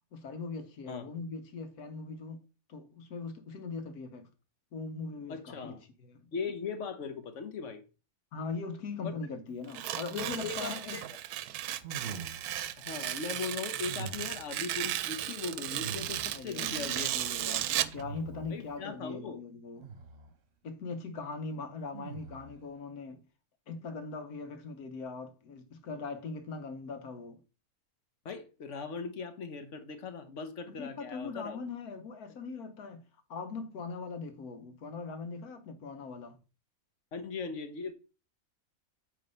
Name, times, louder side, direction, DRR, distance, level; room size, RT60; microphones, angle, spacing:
voice 1, 0.1-2.4 2.7-4.3 4.7-6.3 8.3-11.0 16.3-19.9 20.6-23.3 23.7-27.4 30.7-33.0 33.3-36.4, left 4 dB, 90° left, 1.5 m, -41 dB
voice 2, 5.3-5.8 6.3-7.8 9.0-9.1 10.1-11.1 12.8-17.1 17.5-17.6 18.5-19.4 28.2-31.6 37.1-37.9, left 5 dB, 55° left, 1.3 m, -39 dB
Tearing, 9.7-18.0, right 12 dB, 90° right, 1.1 m, -35 dB
sound 1, 11.8-12.7 13.8-14.6 15.7-16.5 17.7-18.7 19.8-20.3 21.9-22.6, right 5 dB, 50° right, 1.1 m, -44 dB
8.7 x 3.3 x 5.3 m
omnidirectional pair, 1.5 m